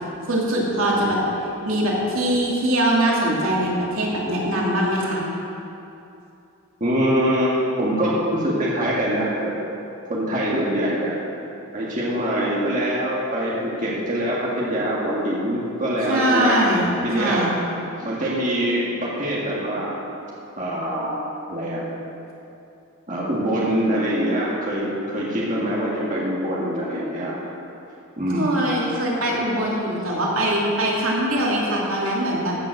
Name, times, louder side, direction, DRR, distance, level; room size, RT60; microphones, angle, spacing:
voice 1, 0.2-1.2 1.7-5.2 16.1-16.9 17.2-17.5 28.4-32.6, right 1 dB, 75° right, -4 dB, 2.7 m, -22 dB
voice 2, 6.8-9.6 10.1-11.1 11.7-16.6 17.0-17.4 18.0-20.0 20.6-21.2 21.5-21.8 23.1-27.4 28.2-28.6 29.8-29.9, equal, 35° right, -6 dB, 2.0 m, -24 dB
15.0 x 7.4 x 6.5 m, 2.8 s
head